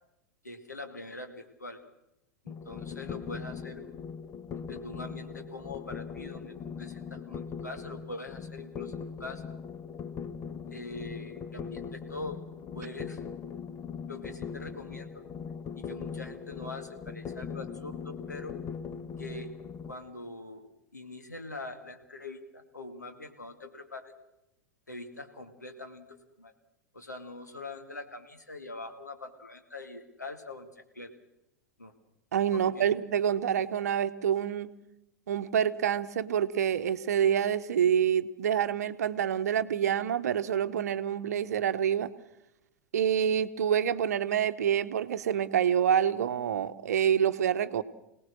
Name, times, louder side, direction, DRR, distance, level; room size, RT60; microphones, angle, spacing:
voice 1, 0.4-1.8 2.4-3.9 4.6-9.5 10.7-12.4 12.7-13.2 14.1-15.1 15.8-18.6 19.2-19.6 19.8-24.1 24.9-26.5 26.9-31.1 31.8-31.9 32.5-32.9, left 2 dB, 85° left, 5 dB, 2.1 m, -43 dB
sound 1, 2.5-19.9, left 6 dB, 30° left, 1.1 m, -40 dB
voice 2, 32.3-34.7 35.3-42.1 42.9-47.8, right 9 dB, 65° right, 12 dB, 0.9 m, -27 dB
26.5 x 18.0 x 6.3 m, 0.87 s
figure-of-eight pair, 90°, 9 cm